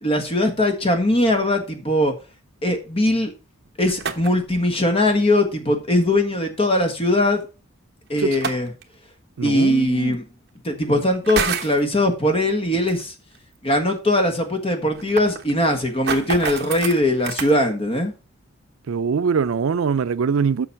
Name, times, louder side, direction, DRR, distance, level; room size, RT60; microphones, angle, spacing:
voice 1, 0.0-2.1 2.6-3.3 3.8-7.5 8.1-8.7 9.4-10.2 10.6-13.1 13.6-18.1, left 1 dB, 25° left, 1.6 m, -20 dB
sound 1, 3.7-4.5 6.1-6.2 8.2-8.8 10.0-10.1 11.1-11.8 12.9-13.0 13.3-13.4 13.8-13.9 14.1-14.2 14.7-17.5, right 6 dB, 50° right, 1.1 m, -28 dB
voice 2, 9.4-10.1 18.9-20.7, right 6 dB, 75° right, 0.4 m, -22 dB
7.1 x 6.4 x 5.9 m
head